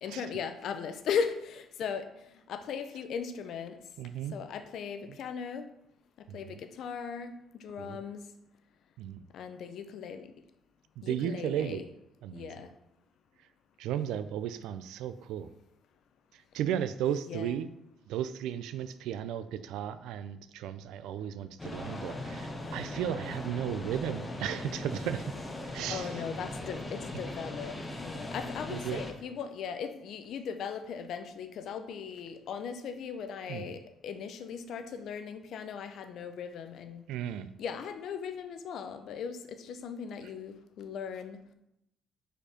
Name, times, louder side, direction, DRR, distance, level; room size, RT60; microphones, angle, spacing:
voice 1, 0.0-2.1 2.5-3.8 4.3-5.7 6.3-8.2 9.3-10.3 11.0-11.9 12.3-12.7 17.1-17.6 25.9-37.0 37.6-41.4, left 6 dB, 70° left, 9 dB, 0.6 m, -38 dB
voice 2, 4.0-4.4 6.3-6.4 7.8-8.0 9.0-9.2 11.0-11.8 12.2-12.5 13.8-15.5 16.5-17.7 18.1-25.2 25.7-26.1 28.7-29.0 33.5-33.7 37.1-37.5, right 10 dB, 85° right, 12 dB, 0.4 m, -34 dB
sound 1, 21.6-29.1, left 1 dB, 20° left, 1.1 m, -39 dB
5.0 x 4.4 x 5.0 m, 0.82 s
cardioid pair, 85°, 0 cm